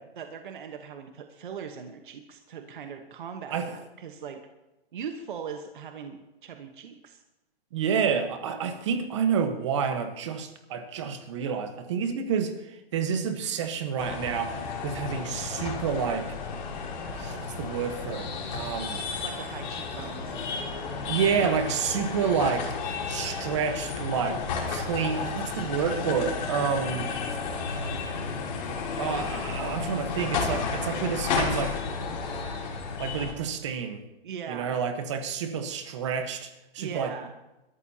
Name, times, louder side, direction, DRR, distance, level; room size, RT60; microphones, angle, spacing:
voice 1, 0.2-4.5 4.9-7.2 19.2-20.5 34.2-34.8 36.8-37.3, right 7 dB, 55° right, 5 dB, 1.2 m, -40 dB
voice 2, 7.7-12.5 12.9-14.6 14.8-16.3 17.1-19.0 21.1-22.7 23.1-24.4 24.7-27.1 28.9-31.8 33.0-34.0 34.5-37.1, right 7 dB, 30° right, 7 dB, 1.2 m, -29 dB
sound 1, 14.0-33.3, left 5 dB, 45° left, 3.2 m, -32 dB
24.5 x 13.5 x 2.8 m, 1.0 s
hypercardioid pair, 175°, 31 cm